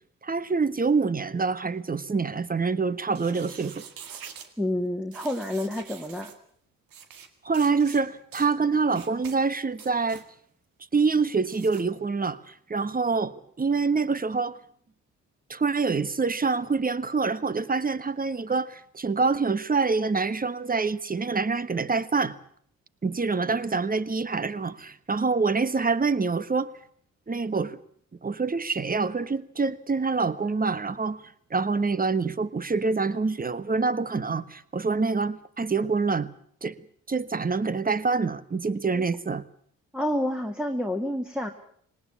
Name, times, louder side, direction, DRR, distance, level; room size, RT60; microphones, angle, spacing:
voice 1, 0.2-3.8 7.4-10.2 10.9-14.6 15.5-22.4 23.0-26.7 27.3-27.8 28.2-31.2 31.5-36.3 36.6-36.8 37.1-39.4, right 4 dB, 25° right, 1.3 m, -26 dB
sound 1, 3.1-4.5 5.1-6.4 6.9-7.3 7.5-8.0 8.3-8.5 8.9-9.4 9.7-10.3 11.5-11.8, right 7 dB, 75° right, 2.2 m, -45 dB
voice 2, 4.6-6.3 38.9-39.1 39.9-41.5, left 1 dB, 5° right, 2.2 m, -29 dB
19.5 x 19.0 x 8.5 m
supercardioid pair, 50°, 34 cm